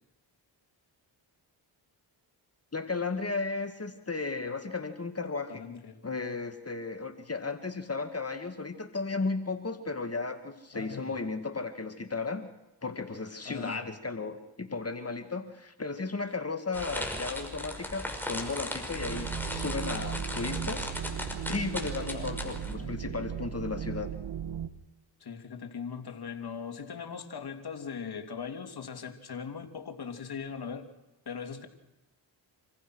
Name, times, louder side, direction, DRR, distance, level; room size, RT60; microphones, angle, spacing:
voice 1, 2.7-5.6 6.0-12.5 12.8-20.9 21.5-24.1, left 3 dB, 30° left, 8 dB, 2.1 m, -35 dB
voice 2, 5.5-6.0 10.7-11.2 13.4-13.9 22.1-23.1 25.2-30.9 31.2-31.7, left 6 dB, 50° left, 5 dB, 3.0 m, -40 dB
sound 1, 16.7-22.8, left 1 dB, 5° left, 5.6 m, -37 dB
sound 2, 18.9-24.7, right 9 dB, 60° right, 1.5 m, -37 dB
26.5 x 15.5 x 6.4 m, 1.0 s
supercardioid pair, 50°, 47 cm